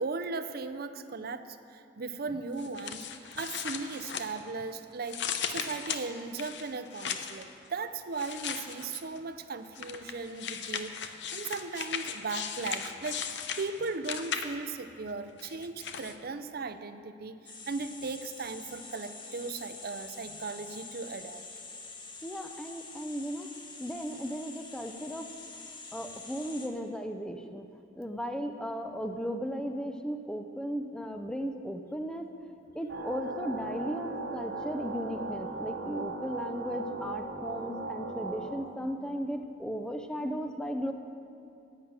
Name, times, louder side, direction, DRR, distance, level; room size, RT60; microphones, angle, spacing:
voice 1, 0.0-21.4, right 4 dB, 55° right, 11 dB, 0.6 m, -37 dB
sound 1, 2.6-4.7 5.0-7.4 8.1-9.2 9.7-14.8 15.4-16.1, left 7 dB, 70° left, 0.7 m, -37 dB
sound 2, 17.5-26.7, left 3 dB, 25° left, 1.3 m, -46 dB
voice 2, 22.2-23.5 23.8-25.3 25.9-27.7 28.0-32.3 32.7-40.9, equal, 5° left, 6 dB, 0.5 m, -36 dB
sound 3, 32.9-38.6, right 3 dB, 70° right, 1.1 m, -38 dB
11.0 x 9.5 x 7.4 m, 2.6 s
head